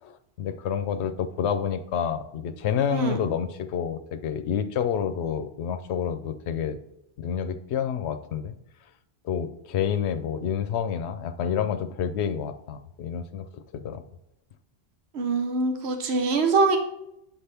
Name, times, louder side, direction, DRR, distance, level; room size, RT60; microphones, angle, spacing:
voice 1, 0.0-6.8 7.2-8.5 9.2-14.0, left 8 dB, 90° left, 9 dB, 0.8 m, -29 dB
voice 2, 15.1-16.8, right 3 dB, 80° right, 5 dB, 1.1 m, -23 dB
8.6 x 5.7 x 3.4 m, 0.83 s
omnidirectional pair, 1.1 m